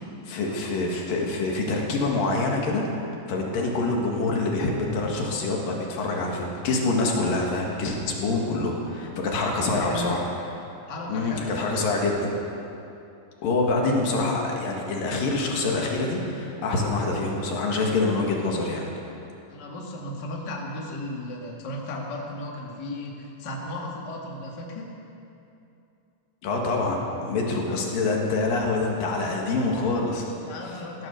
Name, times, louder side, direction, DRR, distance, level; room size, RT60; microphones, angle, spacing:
voice 1, 0.0-2.9 3.3-10.2 10.6-10.7 11.1-12.3 13.4-18.9 26.4-30.3, left 3 dB, 80° left, 0 dB, 3.6 m, -26 dB
voice 2, 3.5-3.9 9.6-10.1 10.9-11.5 13.8-14.0 19.5-24.9 27.6-27.7 30.4-31.1, left 1 dB, 35° left, -2 dB, 2.2 m, -35 dB
16.5 x 12.5 x 6.8 m, 2.7 s
omnidirectional pair, 3.9 m